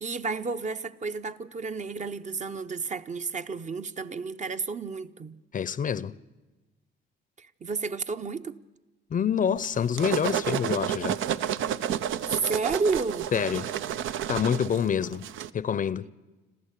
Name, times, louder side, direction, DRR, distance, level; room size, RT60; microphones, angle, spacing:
voice 1, 0.0-5.4 7.4-8.5 12.3-13.3, right 4 dB, 35° right, 0.8 m, -31 dB
voice 2, 5.5-6.1 9.1-11.2 13.3-13.7 14.3-15.3 15.5-16.1, left 8 dB, 40° left, 0.6 m, -27 dB
Packing Peanuts Box Closed, 9.6-15.5, right 10 dB, 80° right, 0.7 m, -30 dB
26.5 x 14.5 x 8.3 m
cardioid pair, 90°, 20 cm